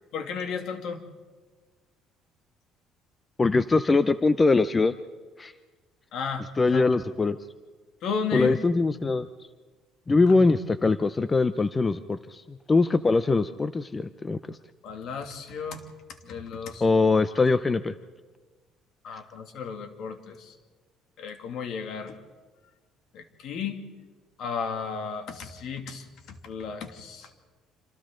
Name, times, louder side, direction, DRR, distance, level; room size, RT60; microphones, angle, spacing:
voice 1, 0.1-1.0 6.1-6.8 8.0-8.5 14.8-15.8 16.2-16.8 19.0-20.5 21.2-22.2 23.1-23.8 24.4-27.3, left 6 dB, 65° left, 6 dB, 2.4 m, -34 dB
voice 2, 3.4-4.9 5.4-5.5 6.6-7.4 8.3-9.3 10.1-14.6 16.8-17.9, left 3 dB, 20° left, 13 dB, 0.6 m, -22 dB
27.5 x 27.0 x 3.9 m, 1.3 s
cardioid pair, 125°, 0 cm